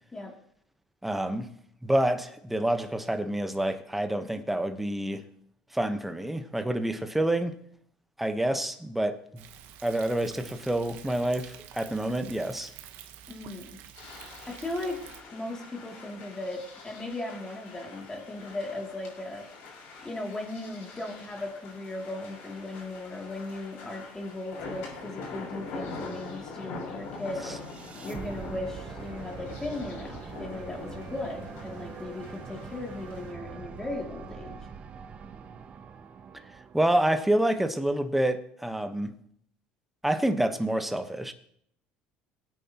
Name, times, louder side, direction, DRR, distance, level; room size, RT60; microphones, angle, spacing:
voice 1, 1.0-1.5 1.8-5.2 5.7-7.6 8.2-9.4 9.8-12.7 27.4-27.5 36.7-39.2 40.0-41.3, right 1 dB, 5° right, 1.2 m, -28 dB
Thunder, 9.4-15.2, right 10 dB, 70° right, 1.3 m, -48 dB
voice 2, 13.3-13.8 14.5-15.0 15.3-19.5 20.0-27.6 28.0-34.6, left 2 dB, 15° left, 2.9 m, -37 dB
sound 1, 13.9-33.3, left 3 dB, 75° left, 5.7 m, -44 dB
sound 2, 27.2-37.4, right 6 dB, 35° right, 1.0 m, -43 dB
20.5 x 9.2 x 3.0 m
supercardioid pair, 110°, 3 cm